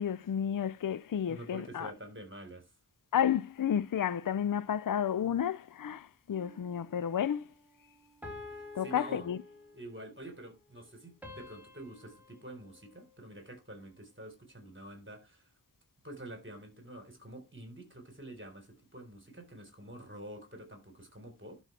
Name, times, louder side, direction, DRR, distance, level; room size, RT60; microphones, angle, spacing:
voice 1, 0.0-1.9 3.1-7.5 8.8-9.4, left 9 dB, 55° left, 0.5 m, -31 dB
voice 2, 1.3-2.7 8.5-9.3 9.7-15.5 16.0-21.6, right 1 dB, 30° right, 4.1 m, -47 dB
sound 1, 6.3-7.0 8.2-10.0 11.2-13.6, left 2 dB, 5° right, 3.7 m, -50 dB
11.5 x 5.4 x 3.3 m
wide cardioid pair, 50°, 39 cm